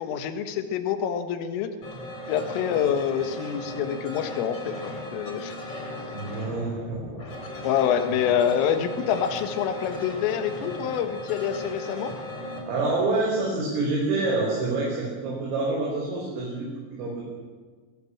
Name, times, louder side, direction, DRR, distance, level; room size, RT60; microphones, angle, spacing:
voice 1, 0.0-1.7 2.3-5.6 6.0-6.1 7.6-12.1, left 8 dB, 80° left, 7 dB, 4.1 m, -26 dB
sound 1, 1.8-12.6, left 1 dB, 30° left, 5.2 m, -37 dB
voice 2, 6.1-7.0 12.7-17.2, right 2 dB, 85° right, -3 dB, 7.7 m, -27 dB
24.5 x 21.0 x 7.3 m, 1.5 s
omnidirectional pair, 5.8 m